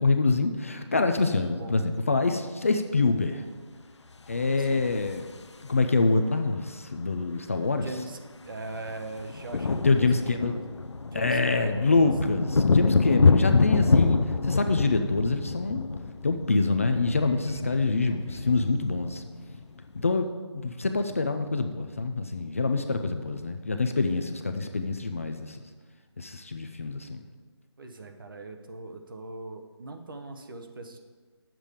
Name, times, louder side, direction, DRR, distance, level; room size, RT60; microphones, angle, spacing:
voice 1, 0.0-3.4 4.3-5.3 5.7-7.9 9.7-10.6 11.1-15.8 16.2-19.2 20.0-20.3 20.6-25.6 26.2-27.2, left 3 dB, 30° left, 6 dB, 0.4 m, -26 dB
voice 2, 1.5-1.9 4.6-4.9 7.7-8.2 8.4-10.6 11.1-12.0 27.8-31.0, right 2 dB, 50° right, 5 dB, 1.0 m, -41 dB
sound 1, 4.3-5.9 7.2-7.3 7.5-7.7 8.0-20.1, left 4 dB, 75° left, 0.6 m, -27 dB
8.9 x 7.4 x 5.0 m, 1.4 s
figure-of-eight pair, 160°, 15 cm